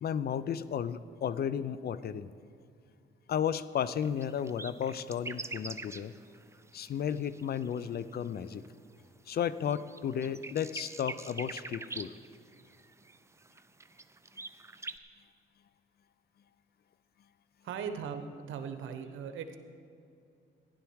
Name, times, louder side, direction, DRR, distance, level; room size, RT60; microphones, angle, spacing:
voice 1, 0.0-2.3 3.3-6.1 6.7-8.6 9.3-12.1, left 8 dB, 50° left, 15 dB, 0.5 m, -33 dB
sound 1, 3.8-8.9 9.3-15.0, right 3 dB, 15° right, 0.5 m, -45 dB
voice 2, 17.6-19.6, right 7 dB, 80° right, 8 dB, 1.0 m, -39 dB
15.0 x 11.0 x 4.7 m, 2.5 s
cardioid pair, 90°, 20 cm